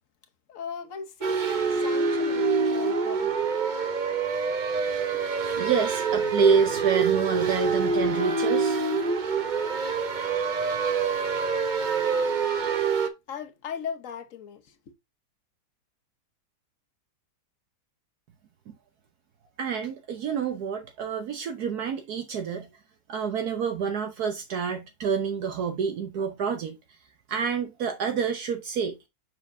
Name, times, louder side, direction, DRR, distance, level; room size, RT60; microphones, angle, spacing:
voice 1, 0.5-3.4 4.8-5.2 13.3-14.8, left 7 dB, 55° left, 1.4 m, -39 dB
sound 1, 1.2-13.1, right 5 dB, 40° right, 0.8 m, -26 dB
voice 2, 5.6-8.8 19.6-22.7 23.1-26.8 27.3-29.1, right 6 dB, 70° right, 1.4 m, -27 dB
7.0 x 5.8 x 2.7 m
omnidirectional pair, 1.7 m